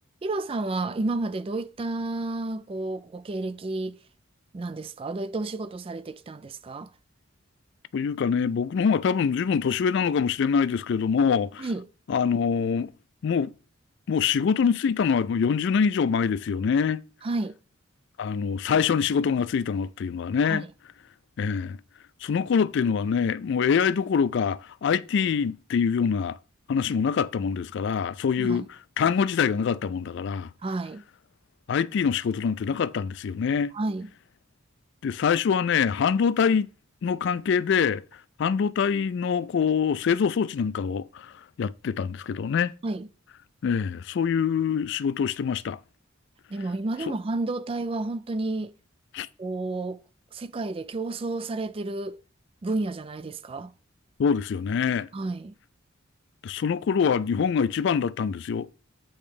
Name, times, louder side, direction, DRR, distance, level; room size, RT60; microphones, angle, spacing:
voice 1, 0.2-4.0 4.5-6.9 11.6-11.9 17.2-17.6 20.4-20.7 28.4-28.7 30.6-31.0 33.7-34.1 42.8-43.1 46.5-48.8 49.4-50.0 50.3-52.2 52.6-53.7 55.1-55.6, right 2 dB, 25° right, 0.3 m, -31 dB
voice 2, 7.9-11.7 12.1-12.9 13.2-13.5 14.1-17.0 18.2-20.6 21.4-21.8 22.2-26.4 26.7-28.6 29.0-30.5 31.7-33.7 35.0-36.7 37.0-38.0 38.4-41.3 41.6-42.7 43.6-45.8 49.1-49.3 54.2-55.1 56.4-58.7, left 6 dB, 60° left, 0.3 m, -24 dB
8.8 x 3.1 x 5.0 m
head